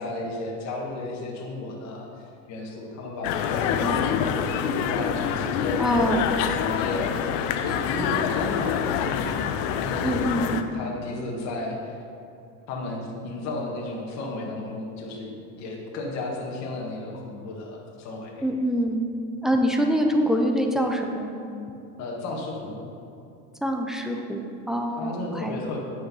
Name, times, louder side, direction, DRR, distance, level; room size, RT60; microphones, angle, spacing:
voice 1, 0.0-4.1 4.5-5.8 6.7-10.2 10.7-12.0 12.7-18.5 22.0-22.8 24.9-25.8, left 2 dB, 45° left, -1 dB, 1.7 m, -34 dB
sound 1, 3.2-10.6, left 8 dB, 70° left, 0.7 m, -26 dB
voice 2, 5.8-6.3 10.0-10.7 18.4-19.0 19.4-21.3 23.6-25.8, equal, ahead, 2 dB, 0.5 m, -25 dB
8.7 x 6.6 x 5.5 m, 2.6 s
cardioid pair, 145°, 39 cm